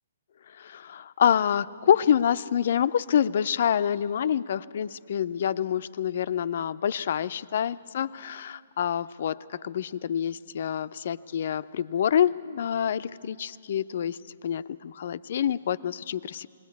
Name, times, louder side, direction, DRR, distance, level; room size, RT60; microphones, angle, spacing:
voice 1, 0.6-14.2 14.4-16.5, left 9 dB, 50° left, 14 dB, 0.5 m, -27 dB
21.0 x 18.5 x 8.3 m, 2.4 s
figure-of-eight pair, 125°, 0 cm